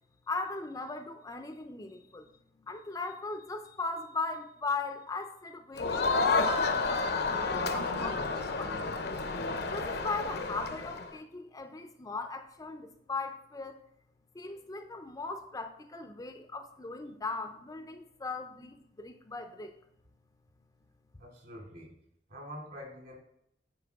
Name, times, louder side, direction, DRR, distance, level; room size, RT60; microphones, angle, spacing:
voice 1, 0.3-2.3 2.6-9.0 9.7-13.8 14.3-19.7, left 3 dB, 20° left, 7 dB, 0.5 m, -38 dB
Crowd, 5.8-11.1, left 3 dB, 65° left, 0.7 m, -30 dB
voice 2, 21.2-21.9 22.3-23.2, equal, 60° right, -1 dB, 2.6 m, -45 dB
9.3 x 4.5 x 3.5 m, 0.76 s
head